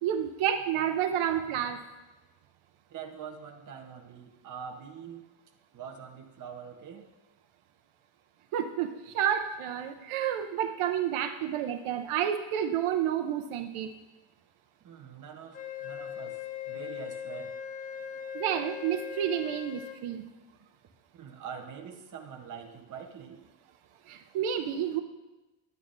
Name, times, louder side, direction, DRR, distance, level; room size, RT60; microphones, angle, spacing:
voice 1, 0.0-1.8 8.5-13.9 18.3-20.2 24.1-25.0, right 9 dB, 80° right, 7 dB, 0.7 m, -30 dB
voice 2, 2.9-5.2 5.7-7.1 14.8-16.4 16.7-17.6 21.1-23.4, right 7 dB, 40° right, 3 dB, 0.8 m, -44 dB
Wind instrument woodwind instrument, 15.5-20.0, left 8 dB, 20° left, 0.4 m, -39 dB
10.5 x 9.0 x 2.5 m, 1.1 s
cardioid pair, 175°, 50 cm